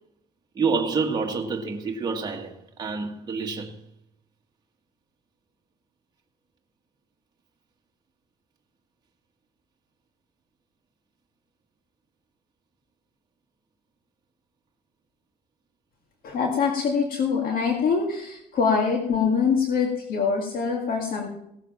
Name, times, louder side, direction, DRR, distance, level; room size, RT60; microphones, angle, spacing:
voice 1, 0.5-3.8, right 4 dB, 25° right, 1.6 m, -28 dB
voice 2, 16.2-21.3, left 5 dB, 60° left, 2.0 m, -24 dB
17.0 x 7.3 x 5.7 m
cardioid pair, 110°, 17 cm